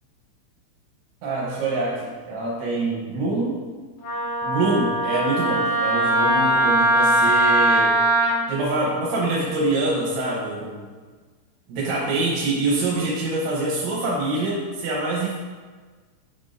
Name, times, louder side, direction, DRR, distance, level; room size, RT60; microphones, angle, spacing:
voice 1, 1.2-3.6 4.4-8.0 8.5-10.9 11.7-15.3, right 2 dB, 85° right, -5 dB, 3.3 m, -25 dB
Wind instrument woodwind instrument, 4.0-8.3, right 1 dB, 80° left, 3.4 m, -20 dB
7.0 x 5.9 x 2.6 m, 1.4 s
omnidirectional pair, 5.2 m